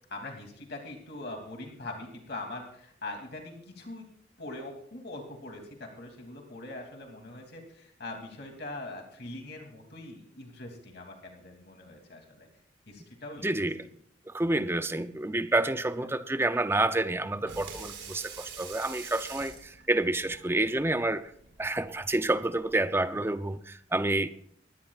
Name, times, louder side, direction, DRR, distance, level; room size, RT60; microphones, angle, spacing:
voice 1, 0.1-4.1 4.4-12.5 12.9-13.5 16.0-16.1 21.8-21.9, left 2 dB, 60° left, 2.7 m, -42 dB
voice 2, 13.4-13.8 14.3-21.3 21.6-24.3, right 2 dB, 15° right, 0.5 m, -28 dB
Water tap faucet / Sink (filling or washing), 17.4-22.8, right 6 dB, 85° right, 4.8 m, -46 dB
22.5 x 17.0 x 2.4 m
head